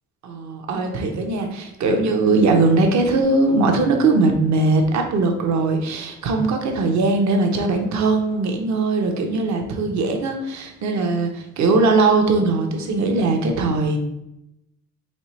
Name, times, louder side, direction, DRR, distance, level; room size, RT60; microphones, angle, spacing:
voice 1, 0.2-14.0, right 3 dB, 70° right, 4 dB, 0.8 m, -20 dB
4.3 x 3.3 x 3.1 m, 0.84 s
cardioid pair, 90°, 30 cm